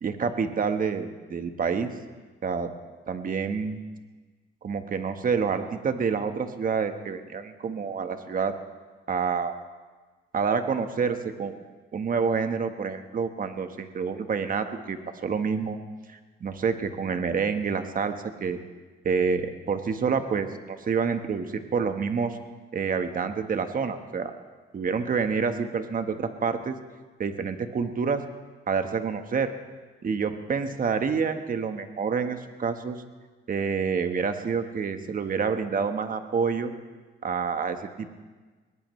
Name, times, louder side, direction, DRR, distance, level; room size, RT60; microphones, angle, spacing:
voice 1, 0.0-1.9 2.4-2.7 3.1-3.8 4.6-8.5 9.1-9.5 10.3-11.5 11.9-15.0 15.2-15.8 16.1-18.1 18.4-18.6 19.0-22.4 22.7-24.3 24.7-26.7 27.2-28.2 28.7-29.5 30.0-33.0 33.5-36.7 37.2-38.1, right 5 dB, 45° right, 7 dB, 1.4 m, -28 dB
22.0 x 19.0 x 3.3 m, 1.3 s
cardioid pair, 90°, 20 cm